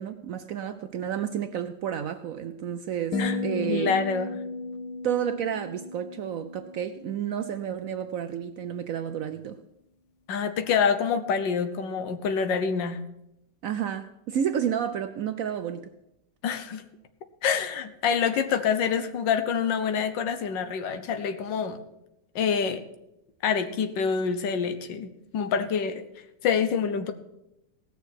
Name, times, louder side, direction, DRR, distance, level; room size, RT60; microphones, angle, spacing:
voice 1, 0.0-4.0 5.0-9.6 13.6-15.9, right 9 dB, 70° right, 0.8 m, -31 dB
sound 1, 3.1-7.4, left 3 dB, 70° left, 1.3 m, -34 dB
voice 2, 3.7-4.3 10.3-13.0 16.4-16.8 17.4-21.8 22.3-22.8 23.4-26.0 26.4-27.1, left 6 dB, 90° left, 1.6 m, -26 dB
17.0 x 6.8 x 6.3 m
omnidirectional pair, 1.9 m